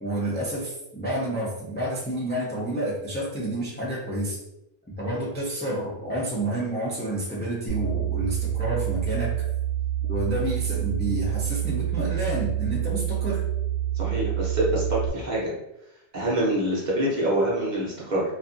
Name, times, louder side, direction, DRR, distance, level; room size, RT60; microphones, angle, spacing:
voice 1, 0.0-4.4 5.0-9.4 10.1-13.4, right 1 dB, 15° left, -7 dB, 0.4 m, -29 dB
sound 1, 7.7-15.1, right 12 dB, 80° right, 1.0 m, -27 dB
voice 2, 13.9-15.6 16.1-18.2, right 1 dB, 45° right, -5 dB, 0.9 m, -25 dB
2.5 x 2.4 x 2.5 m, 0.87 s
omnidirectional pair, 1.2 m